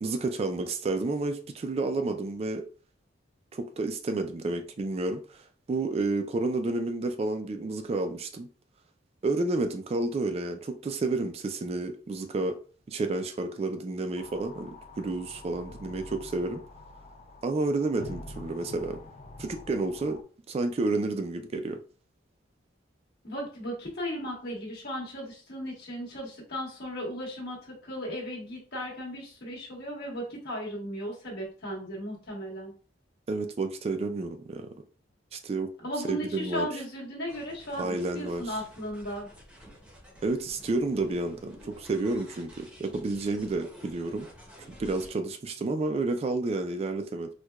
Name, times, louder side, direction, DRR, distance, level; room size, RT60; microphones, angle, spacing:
voice 1, 0.0-2.6 3.5-8.5 9.2-12.5 12.9-16.6 17.4-19.0 19.4-20.2 20.5-21.8 33.3-34.7 35.3-35.7 36.1-36.7 37.8-38.4 40.2-44.3 44.8-47.3, right 3 dB, 35° right, 0.3 m, -30 dB
sound 1, 14.1-20.2, left 2 dB, 40° left, 0.4 m, -46 dB
voice 2, 23.2-32.7 35.8-39.3, equal, 60° left, 1.5 m, -36 dB
sound 2, 37.3-45.1, equal, 5° right, 0.8 m, -51 dB
4.4 x 2.2 x 2.3 m
head